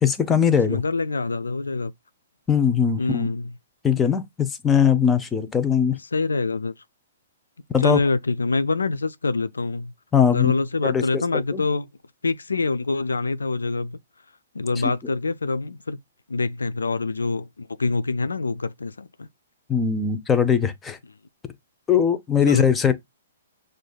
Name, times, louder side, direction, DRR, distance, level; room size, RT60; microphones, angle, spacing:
voice 1, 0.0-0.8 2.5-3.3 3.8-6.0 7.7-8.0 10.1-10.5 10.8-11.2 11.5-11.6 14.8-14.9 19.7-21.0 21.9-22.9, left 7 dB, 15° left, 0.6 m, -20 dB
voice 2, 0.7-1.9 3.0-3.5 6.1-6.7 7.8-9.9 10.3-11.9 12.2-14.0 14.5-16.0 16.3-19.3 22.5-22.6, left 3 dB, 85° left, 0.4 m, -25 dB
6.2 x 2.6 x 2.3 m
hypercardioid pair, 125°, 0 cm